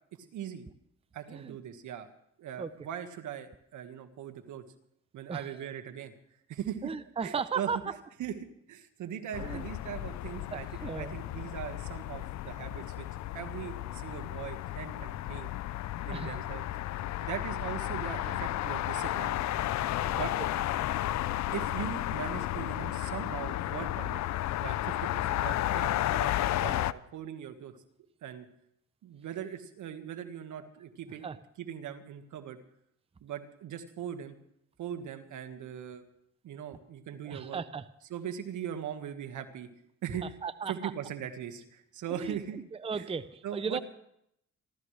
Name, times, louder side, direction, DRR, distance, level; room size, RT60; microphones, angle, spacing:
voice 1, 0.2-0.7 1.1-2.1 2.4-4.6 5.1-6.1 6.5-6.9 7.2-7.7 8.2-13.1 13.3-15.5 16.1-16.6 17.2-19.4 20.1-20.3 21.5-24.2 24.6-27.7 28.2-28.5 29.0-31.3 31.6-32.6 33.2-34.4 34.8-36.0 36.4-37.6 38.1-39.7 40.0-40.2 40.7-42.6 42.9-43.1 43.4-43.8, right 9 dB, 75° right, 7 dB, 1.7 m, -40 dB
voice 2, 6.8-8.0 9.4-9.6 10.5-11.1 16.1-16.3 18.2-18.4 31.2-31.4 37.3-37.9 40.2-40.9 42.1-42.4 42.7-43.8, right 5 dB, 20° right, 13 dB, 0.6 m, -36 dB
sound 1, 9.3-26.9, left 14 dB, 65° left, 0.5 m, -33 dB
28.0 x 13.0 x 3.3 m, 0.75 s
cardioid pair, 90°, 30 cm